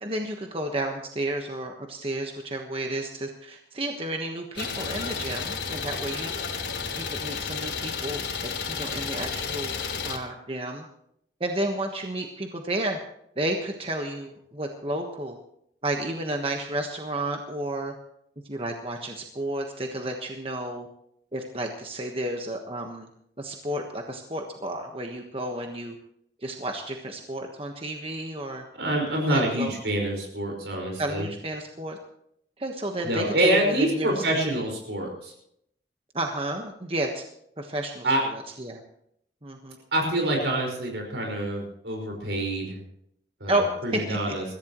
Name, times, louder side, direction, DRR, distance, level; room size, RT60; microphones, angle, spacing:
voice 1, 0.0-6.3 6.9-10.8 11.4-13.0 13.4-15.4 15.8-17.9 18.4-20.9 21.3-23.1 23.4-25.9 26.4-28.6 29.3-29.7 31.0-32.0 32.6-34.3 36.1-37.2 37.6-38.8 39.4-39.8 43.5-43.6 43.9-44.4, right 1 dB, 30° right, 3 dB, 1.3 m, -31 dB
Idling, 4.6-10.2, left 6 dB, 80° left, 2.9 m, -32 dB
voice 2, 28.7-31.3 33.0-35.3 38.0-38.2 39.9-42.8 43.4-44.4, right 1 dB, 80° right, 0 dB, 5.3 m, -26 dB
22.5 x 15.0 x 3.1 m, 0.71 s
head